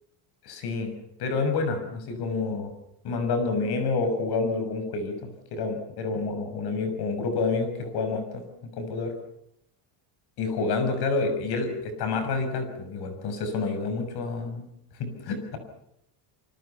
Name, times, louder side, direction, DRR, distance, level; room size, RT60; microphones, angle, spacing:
voice 1, 0.4-0.9 1.2-2.7 3.0-9.1 10.4-14.7 15.0-15.6, left 4 dB, 50° left, 7 dB, 6.7 m, -28 dB
27.0 x 25.0 x 5.9 m, 0.75 s
cardioid pair, 170°, 49 cm